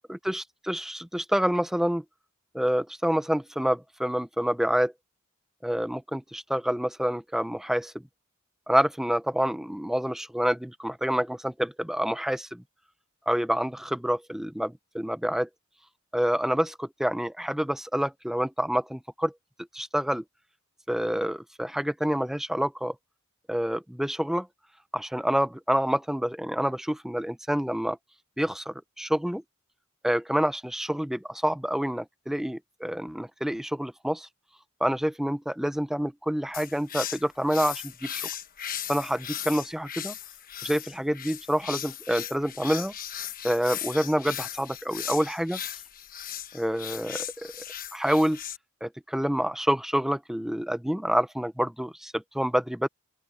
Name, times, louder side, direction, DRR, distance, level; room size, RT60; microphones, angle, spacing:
voice 1, 0.1-2.0 2.5-4.9 5.6-7.9 8.7-12.6 13.3-15.5 16.1-19.3 19.7-20.2 20.9-22.9 23.5-24.5 24.9-28.0 28.4-29.4 30.0-34.3 34.8-38.3 38.9-40.1 40.6-42.9 43.4-45.6 46.5-47.5 47.9-48.4 48.8-52.9, equal, ahead, 0.4 m, -27 dB
sound 1, 36.5-48.6, left 10 dB, 45° left, 1.3 m, -37 dB
open air
head